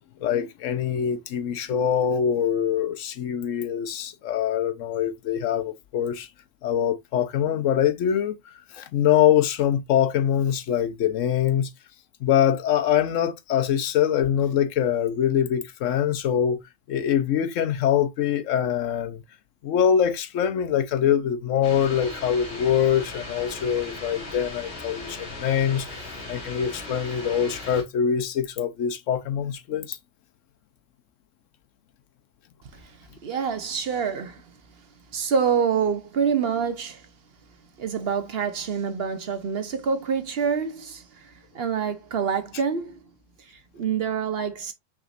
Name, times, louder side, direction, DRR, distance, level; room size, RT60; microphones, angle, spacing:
voice 1, 0.2-6.3 6.6-8.3 8.7-11.7 12.2-16.6 16.9-19.2 19.6-25.9 26.3-30.0, left 9 dB, 75° left, 1.0 m, -24 dB
sound 1, 21.6-27.8, left 2 dB, 50° left, 2.0 m, -38 dB
voice 2, 33.2-34.5 35.1-37.1 37.8-43.0 43.4-44.7, right 6 dB, 55° right, 0.9 m, -27 dB
5.9 x 3.6 x 2.5 m
omnidirectional pair, 1.3 m